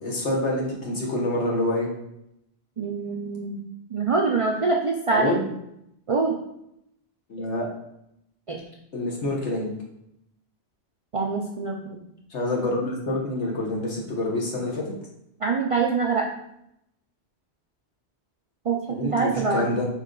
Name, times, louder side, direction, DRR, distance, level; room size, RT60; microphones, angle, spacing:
voice 1, 0.0-1.9 5.1-5.5 7.3-7.6 8.9-9.7 12.3-14.9 18.9-19.9, left 1 dB, 90° left, -2 dB, 1.4 m, -27 dB
voice 2, 2.8-3.6 3.9-5.4 6.1-6.4 8.5-8.6 11.1-12.0 15.4-16.2 18.6-19.6, right 4 dB, 60° right, 0 dB, 0.3 m, -24 dB
4.4 x 3.2 x 3.7 m, 0.79 s
omnidirectional pair, 1.1 m